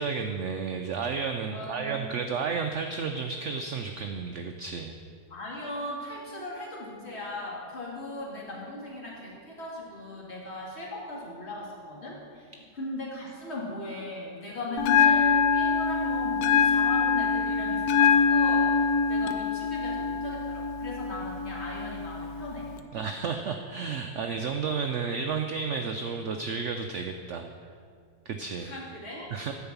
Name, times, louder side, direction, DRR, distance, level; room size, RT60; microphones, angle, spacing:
voice 1, 0.0-5.0 22.9-27.5 28.3-28.7 29.3-29.5, right 5 dB, 75° right, 5 dB, 0.6 m, -32 dB
voice 2, 1.5-2.1 5.3-22.7 28.6-29.3, left 1 dB, 40° left, -4 dB, 2.2 m, -38 dB
Bell, 14.8-22.8, left 6 dB, 70° left, 1.0 m, -24 dB
10.5 x 4.8 x 7.1 m, 2.1 s
omnidirectional pair, 1.8 m